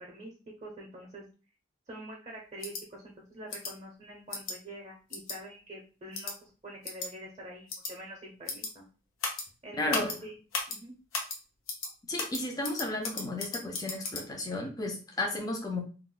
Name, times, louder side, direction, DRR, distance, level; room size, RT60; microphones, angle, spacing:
voice 1, 0.6-1.2 1.9-8.9 9.6-10.3 10.7-10.9, right 1 dB, 35° right, -1 dB, 0.5 m, -45 dB
sound 1, 2.6-2.8 3.5-3.7 4.3-4.5 5.1-5.4 6.1-6.3 6.8-7.1 7.7-7.9 8.5-8.7 9.2-9.4 9.9-10.2 10.5-10.8 11.1-11.4 11.7-11.9 12.2-14.2, left 3 dB, 80° left, 0.8 m, -35 dB
voice 2, 9.8-10.1 12.1-15.8, left 2 dB, 20° left, 1 dB, 0.4 m, -33 dB
2.3 x 2.0 x 3.6 m, 0.36 s
head